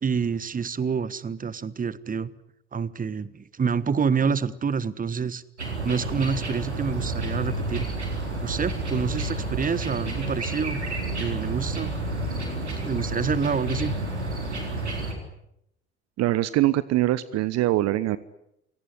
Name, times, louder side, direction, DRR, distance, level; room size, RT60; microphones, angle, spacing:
voice 1, 0.0-2.3 2.7-5.4 5.8-7.9 8.4-10.8 11.2-11.9 12.8-13.9, right 6 dB, 25° right, 18 dB, 1.4 m, -27 dB
sound 1, 5.6-15.1, right 2 dB, 90° right, 4.0 m, -30 dB
voice 2, 16.2-18.2, right 15 dB, 50° right, 17 dB, 1.0 m, -23 dB
28.0 x 18.0 x 9.9 m, 0.80 s
figure-of-eight pair, 55°, 33 cm